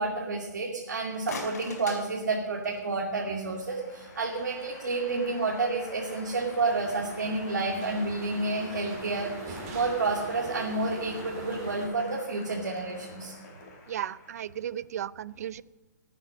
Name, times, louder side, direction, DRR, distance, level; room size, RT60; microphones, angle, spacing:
voice 1, 0.0-13.3, right 3 dB, 85° right, -2 dB, 2.5 m, -30 dB
sound 1, 1.0-3.0, left 3 dB, 60° left, 4.8 m, -42 dB
Applause, 2.3-14.8, left 3 dB, 30° left, 4.3 m, -49 dB
sound 2, 6.0-11.9, right 2 dB, 30° right, 3.2 m, -43 dB
voice 2, 13.9-15.6, right 10 dB, 60° right, 20 dB, 0.5 m, -35 dB
19.0 x 8.7 x 6.3 m, 1.2 s
hypercardioid pair, 140°, 10 cm